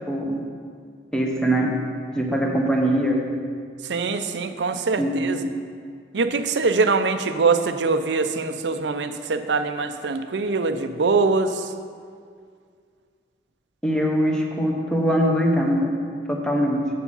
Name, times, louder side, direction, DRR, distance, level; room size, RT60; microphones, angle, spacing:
voice 1, 0.1-0.4 1.1-1.8 2.1-3.2 5.0-5.4 13.8-16.0 16.3-16.9, equal, 5° left, 0 dB, 1.0 m, -22 dB
voice 2, 3.9-5.4 6.1-11.7, right 4 dB, 90° right, 9 dB, 0.6 m, -23 dB
8.3 x 7.1 x 5.4 m, 2.1 s
head